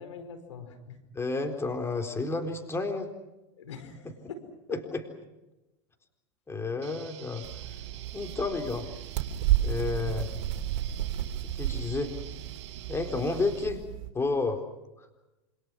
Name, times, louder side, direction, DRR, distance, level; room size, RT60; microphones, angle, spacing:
voice 1, 0.0-1.0 3.6-4.8, left 5 dB, 85° left, 9 dB, 4.9 m, -43 dB
voice 2, 1.1-3.1 4.7-5.0 6.5-7.5 8.1-8.9 9.6-10.3 11.5-12.1 12.9-13.8 14.1-14.6 15.0-15.1, left 3 dB, 15° left, 5 dB, 3.9 m, -31 dB
sound 1, 6.8-13.7, right 12 dB, 75° right, 4.3 m, -47 dB
sound 2, 7.4-14.1, right 12 dB, 60° right, 3.6 m, -32 dB
27.5 x 27.0 x 6.2 m, 1.0 s
hypercardioid pair, 105°, 15 cm